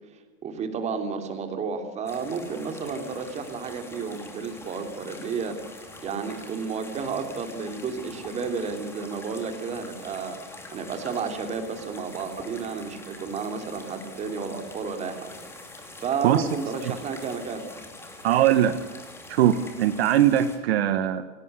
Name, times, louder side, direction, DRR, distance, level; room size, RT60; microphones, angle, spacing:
voice 1, 0.4-5.6 6.0-10.4 10.7-15.3 16.0-17.6, right 5 dB, 15° right, 6 dB, 2.9 m, -31 dB
sound 1, 2.1-20.6, left 2 dB, 5° left, 2.6 m, -44 dB
voice 2, 18.2-18.8 19.3-21.2, right 11 dB, 50° right, 11 dB, 1.3 m, -21 dB
27.0 x 18.0 x 8.2 m, 1.3 s
supercardioid pair, 165°, 39 cm